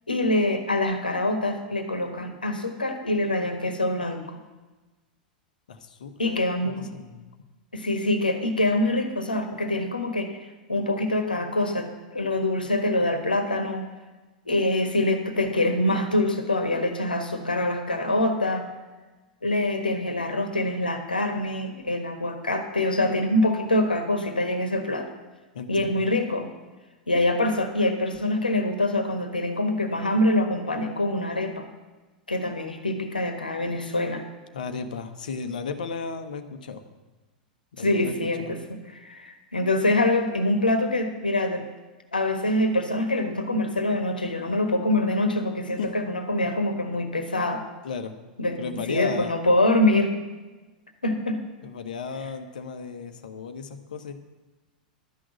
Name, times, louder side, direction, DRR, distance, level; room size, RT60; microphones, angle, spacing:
voice 1, 0.1-4.4 6.2-6.9 7.7-10.4 10.7-13.9 14.5-18.6 19.4-25.1 25.7-26.5 27.1-31.7 32.3-34.2 37.8-41.7 42.1-47.6 48.4-50.2 51.0-51.4, left 1 dB, 80° left, 6 dB, 1.4 m, -25 dB
voice 2, 5.7-7.2 25.5-26.0 34.5-36.8 37.7-38.1 38.4-38.5 45.8-45.9 47.8-48.1 48.6-49.4 51.6-54.1, left 5 dB, 65° left, 8 dB, 1.1 m, -35 dB
12.5 x 6.3 x 8.2 m, 1.2 s
figure-of-eight pair, 90°, 5 cm